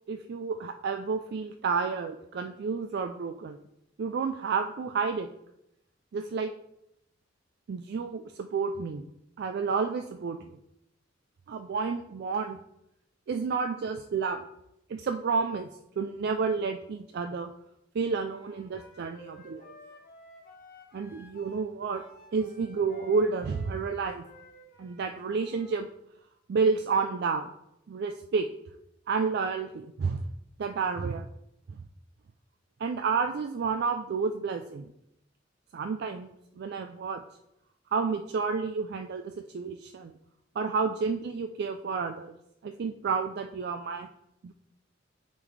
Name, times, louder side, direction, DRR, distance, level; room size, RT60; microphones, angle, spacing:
voice 1, 0.1-3.6 4.0-5.3 6.1-6.5 7.7-9.0 9.4-10.5 11.5-12.6 13.3-14.4 14.9-15.7 16.0-17.5 17.9-19.7 20.9-22.0 22.3-24.3 24.8-25.9 26.5-27.5 27.9-28.5 29.1-30.2 30.6-31.3 32.8-34.9 35.7-37.2 37.9-40.1 40.6-42.3 42.6-44.1 44.4-44.5, right 5 dB, 55° right, 6 dB, 0.3 m, -30 dB
Wind instrument woodwind instrument, 18.2-25.8, left 1 dB, 50° left, 1.4 m, -53 dB
8.9 x 4.0 x 3.2 m, 0.81 s
head